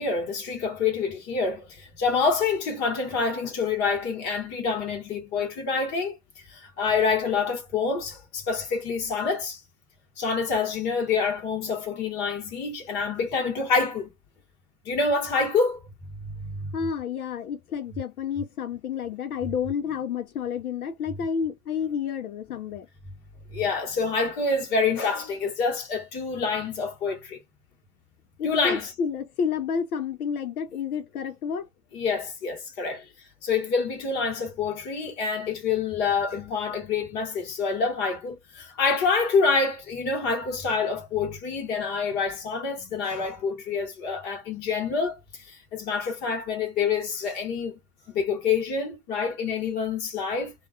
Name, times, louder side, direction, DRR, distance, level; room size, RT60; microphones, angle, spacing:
voice 1, 0.0-6.2 6.5-9.6 10.2-14.1 14.8-15.8 16.2-16.7 23.5-27.4 28.4-28.9 31.9-33.0 33.4-47.8 48.1-50.5, left 4 dB, 20° left, 1.0 m, -27 dB
voice 2, 16.7-22.9 28.4-31.7 32.9-33.0, left 7 dB, 70° left, 0.6 m, -30 dB
2.3 x 2.3 x 2.3 m
hypercardioid pair, 140°, 46 cm